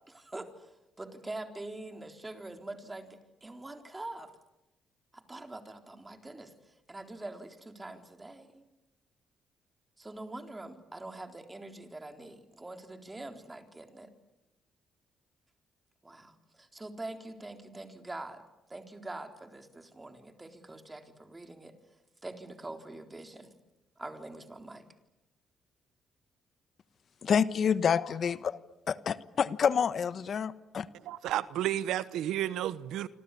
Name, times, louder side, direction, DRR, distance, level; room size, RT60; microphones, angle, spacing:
voice 1, 0.1-4.3 5.1-6.5 6.9-8.6 10.0-14.1 16.0-18.4 18.7-21.7 22.2-23.5 24.0-24.8, right 2 dB, 15° right, 4.0 m, -44 dB
voice 2, 27.2-28.6 28.9-30.9, left 7 dB, 55° left, 1.2 m, -28 dB
voice 3, 31.0-33.1, right 12 dB, 85° right, 1.0 m, -32 dB
27.0 x 26.5 x 8.5 m
cardioid pair, 90°, 0 cm